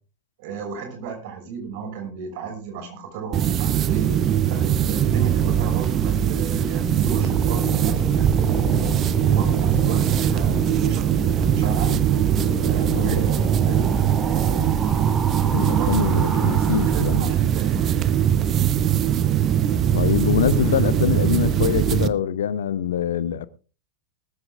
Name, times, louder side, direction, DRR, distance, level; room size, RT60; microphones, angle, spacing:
voice 1, 0.4-4.2 4.5-8.9 9.3-12.1 12.6-14.9 15.4-17.8, right 5 dB, 50° right, 6.2 m, -34 dB
sound 1, 3.3-22.1, right 10 dB, 30° right, 0.8 m, -21 dB
sound 2, 6.5-17.5, equal, 15° right, 4.9 m, -32 dB
voice 2, 15.5-17.3 19.9-23.5, left 9 dB, 65° left, 0.8 m, -24 dB
19.5 x 14.0 x 2.5 m
figure-of-eight pair, 90°, 0 cm